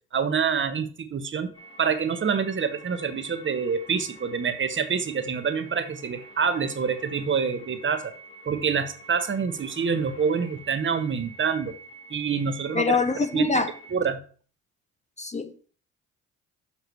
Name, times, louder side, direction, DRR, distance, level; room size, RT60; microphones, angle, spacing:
voice 1, 0.1-1.5 1.8-8.1 8.5-11.7 12.1-13.0 13.3-13.6 13.9-14.2, right 6 dB, 40° right, 1.1 m, -26 dB
sound 1, 1.5-14.0, right 2 dB, 45° left, 4.2 m, -48 dB
voice 2, 12.7-13.7 15.2-15.7, left 4 dB, 25° left, 0.8 m, -25 dB
7.0 x 5.6 x 4.7 m
cardioid pair, 90°, 30 cm